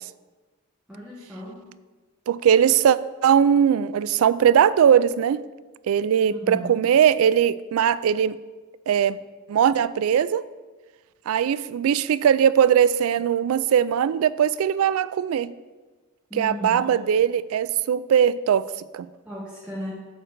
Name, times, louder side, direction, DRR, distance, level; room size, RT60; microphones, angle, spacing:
voice 1, 0.9-1.7 6.3-6.8 16.3-16.9 19.2-19.9, equal, 5° right, -6 dB, 1.2 m, -35 dB
voice 2, 2.3-3.0 3.2-5.4 5.9-8.4 8.9-9.2 9.5-10.4 11.3-15.5 16.3-19.1, right 8 dB, 90° right, 16 dB, 0.3 m, -20 dB
8.9 x 3.8 x 6.4 m, 1.3 s
head